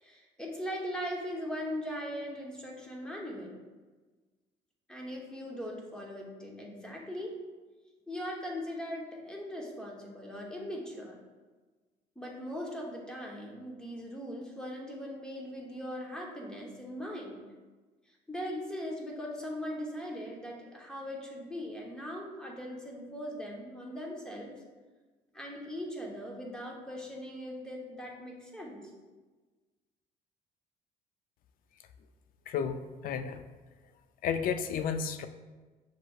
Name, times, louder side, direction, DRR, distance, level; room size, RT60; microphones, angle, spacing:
voice 1, 0.0-3.5 4.9-7.4 8.1-11.2 12.2-17.4 18.3-24.5 25.3-28.9, equal, 5° left, -2 dB, 0.9 m, -40 dB
voice 2, 32.5-33.4 34.2-35.3, left 7 dB, 55° left, 9 dB, 0.4 m, -32 dB
6.5 x 3.2 x 2.4 m, 1.3 s
cardioid pair, 110°, 17 cm